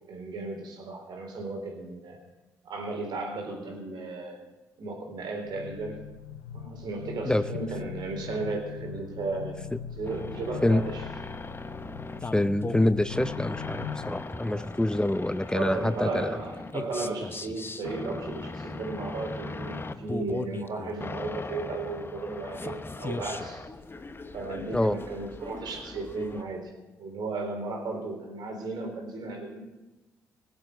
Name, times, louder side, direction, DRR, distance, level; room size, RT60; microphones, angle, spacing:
voice 1, 0.1-2.2 2.6-4.4 4.8-6.0 6.5-9.6 10.0-11.0 14.4-14.7 15.5-23.7 24.3-26.7 27.0-29.6, right 3 dB, 65° right, 2 dB, 3.9 m, -35 dB
sound 1, 5.4-14.2, left 7 dB, 90° left, 0.6 m, -41 dB
sound 2, 10.0-26.4, left 3 dB, 30° left, 1.0 m, -38 dB
voice 2, 12.3-16.4 24.7-25.0, left 1 dB, 10° left, 13 dB, 0.6 m, -26 dB
19.0 x 7.8 x 6.6 m, 1.1 s
hypercardioid pair, 45°, 8 cm